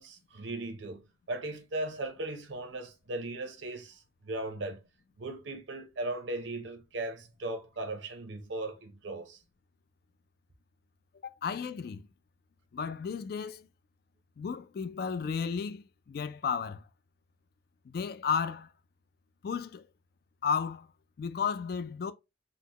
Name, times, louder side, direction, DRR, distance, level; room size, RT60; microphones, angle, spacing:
voice 1, 0.0-4.8 5.2-9.4, right 2 dB, 75° right, 0.8 m, -38 dB
voice 2, 11.2-12.1 12.7-13.7 14.4-16.8 17.9-18.7 19.4-19.9 20.4-20.9 21.2-22.1, left 6 dB, 55° left, 0.3 m, -33 dB
3.9 x 2.1 x 2.9 m
head